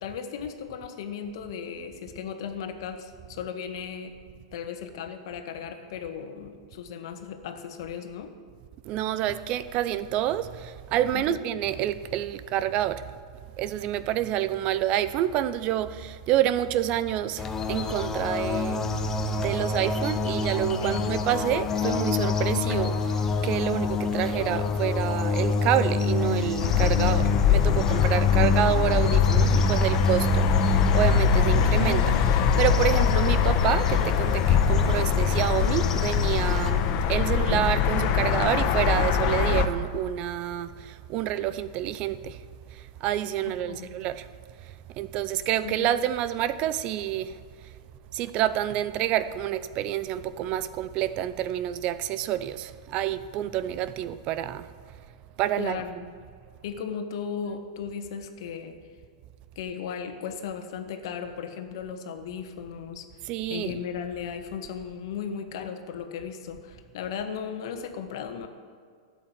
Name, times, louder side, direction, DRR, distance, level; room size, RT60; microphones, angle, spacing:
voice 1, 0.0-4.1 4.5-8.3 11.1-11.4 20.8-21.2 26.9-27.2 43.7-44.0 45.6-45.9 55.6-55.9 56.6-58.8 59.6-68.5, left 7 dB, 60° left, 1.6 m, -36 dB
voice 2, 8.8-13.1 13.6-18.8 19.3-42.4 42.7-44.3 44.6-47.4 48.1-54.7 55.4-55.8 63.2-63.8, right 12 dB, 40° right, 0.6 m, -28 dB
sound 1, 17.4-36.7, left 3 dB, 20° left, 1.4 m, -27 dB
sound 2, 26.6-39.7, left 7 dB, 45° left, 1.1 m, -23 dB
13.0 x 8.0 x 9.5 m
hypercardioid pair, 105°, 3 cm